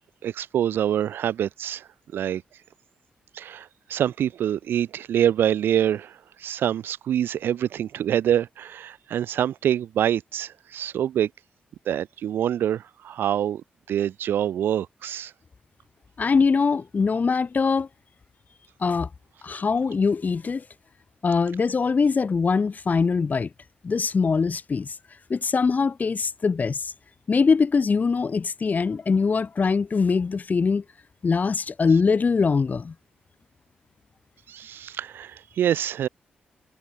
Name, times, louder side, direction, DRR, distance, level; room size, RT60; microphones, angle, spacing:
voice 1, 0.2-2.4 3.3-11.3 11.8-15.3 34.5-36.1, right 10 dB, 75° right, 1.3 m, -26 dB
voice 2, 16.2-17.9 18.8-19.1 19.4-20.6 21.2-23.5 23.8-25.0 25.3-26.9 27.3-30.8 31.2-32.9, left 5 dB, 50° left, 4.5 m, -22 dB
supercardioid pair, 45°, 4 cm